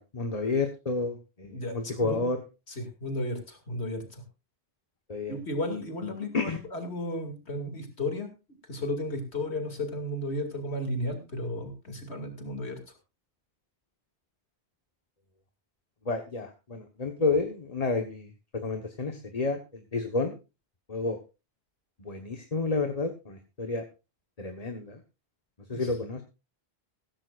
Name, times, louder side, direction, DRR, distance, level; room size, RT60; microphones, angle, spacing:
voice 1, 0.0-2.4 5.1-5.4 6.3-6.6 16.0-20.3 20.9-21.2 22.0-23.8 24.4-25.0 25.7-26.2, left 3 dB, 35° left, 5 dB, 1.3 m, -30 dB
voice 2, 1.5-2.2 2.8-4.2 5.3-8.3 8.7-12.8 25.7-25.9, left 1 dB, 90° left, 5 dB, 2.8 m, -34 dB
16.0 x 14.5 x 2.5 m, 0.28 s
omnidirectional pair, 1.1 m